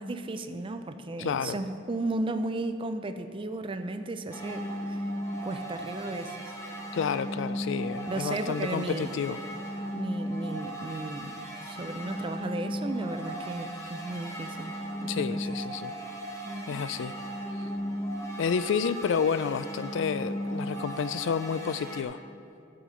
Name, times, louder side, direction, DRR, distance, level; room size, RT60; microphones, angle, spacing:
voice 1, 0.0-5.0 5.4-6.5 8.1-9.1 9.9-14.7 15.0-15.4 16.4-16.9, right 2 dB, 25° right, 9 dB, 0.5 m, -35 dB
voice 2, 1.2-1.6 6.9-9.4 15.1-15.9 16.7-17.1 17.6-17.7 18.4-22.2, left 6 dB, 70° left, 16 dB, 0.3 m, -30 dB
sound 1, 4.3-22.0, equal, 15° left, 1.0 m, -36 dB
11.0 x 7.1 x 5.0 m, 2.5 s
head